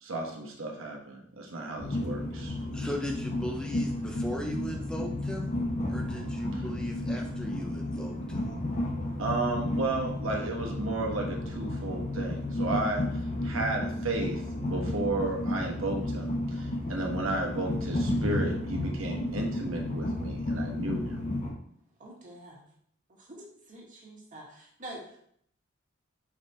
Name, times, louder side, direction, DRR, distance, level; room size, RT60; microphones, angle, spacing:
voice 1, 0.0-2.6 9.2-21.2, right 2 dB, 75° right, 1 dB, 1.3 m, -33 dB
Train, 1.8-21.5, left 1 dB, 35° left, 1.2 m, -32 dB
voice 2, 2.7-5.6 5.9-8.4, left 1 dB, 5° left, 1 dB, 0.6 m, -37 dB
voice 3, 22.0-22.7 23.1-25.2, right 1 dB, 40° right, -2 dB, 2.0 m, -46 dB
5.4 x 5.1 x 4.3 m, 0.66 s
head